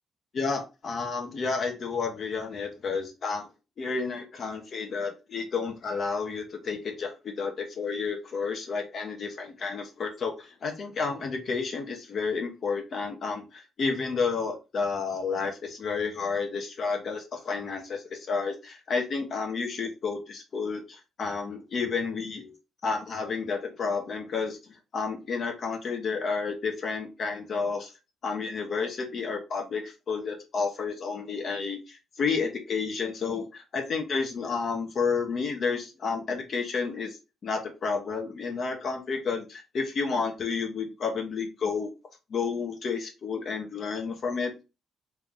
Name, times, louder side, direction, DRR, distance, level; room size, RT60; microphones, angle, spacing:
voice 1, 0.3-3.5 3.8-22.5 22.8-24.6 24.9-27.9 28.2-37.2 37.4-41.9 42.3-44.6, left 5 dB, 50° left, 3 dB, 1.1 m, -31 dB
3.4 x 2.9 x 3.6 m, 0.28 s
cardioid pair, 90°, 0 cm